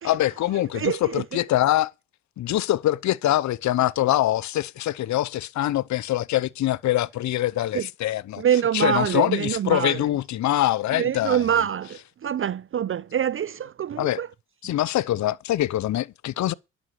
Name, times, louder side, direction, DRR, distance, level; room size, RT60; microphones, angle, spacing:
voice 1, 0.0-1.9 2.4-8.4 8.7-11.4 14.0-14.2 14.6-16.5, left 14 dB, 55° left, 0.7 m, -24 dB
voice 2, 0.7-1.2 7.7-7.9 8.4-10.0 10.9-14.3, right 9 dB, 40° right, 0.5 m, -25 dB
11.0 x 6.2 x 8.1 m
supercardioid pair, 60°, 34 cm